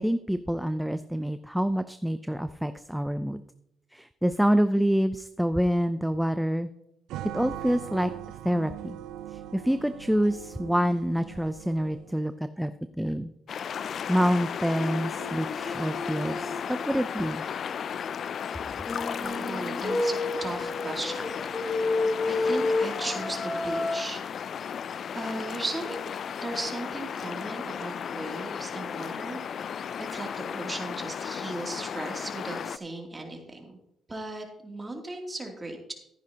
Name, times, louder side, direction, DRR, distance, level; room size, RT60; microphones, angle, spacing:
voice 1, 0.0-3.4 3.9-6.7 7.3-8.1 8.4-9.0 9.3-13.3 14.1-17.4, equal, 5° right, 11 dB, 0.5 m, -27 dB
sound 1, 7.1-12.2, right 12 dB, 90° right, 0.4 m, -41 dB
sound 2, 13.5-32.8, left 7 dB, 55° left, 0.3 m, -35 dB
sound 3, 14.7-17.0 18.9-24.0, left 2 dB, 35° left, 1.3 m, -31 dB
voice 2, 19.2-24.5 25.1-26.0 26.4-29.4 30.0-33.6 34.1-35.9, right 2 dB, 20° right, 1 dB, 2.7 m, -37 dB
14.0 x 10.0 x 2.9 m, 0.79 s
cardioid pair, 90°, 0 cm